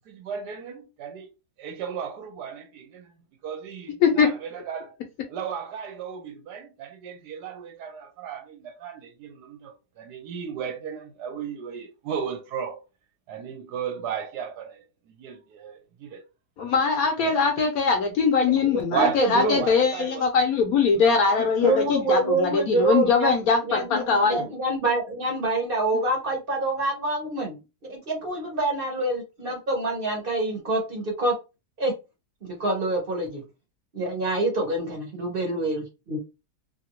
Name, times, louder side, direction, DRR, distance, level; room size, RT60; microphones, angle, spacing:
voice 1, 0.1-1.3 1.6-3.1 3.4-5.0 5.3-12.8 13.3-16.3 17.2-17.7 18.9-20.3 20.9-22.0, right 8 dB, 75° right, 1.1 m, -35 dB
voice 2, 16.6-24.4, left 5 dB, 70° left, 1.0 m, -22 dB
voice 3, 18.6-19.6 21.6-23.4 23.6-31.3 31.8-31.9 32.4-33.4 33.9-36.2, right 2 dB, 40° right, 0.8 m, -26 dB
2.8 x 2.6 x 2.9 m
omnidirectional pair, 1.9 m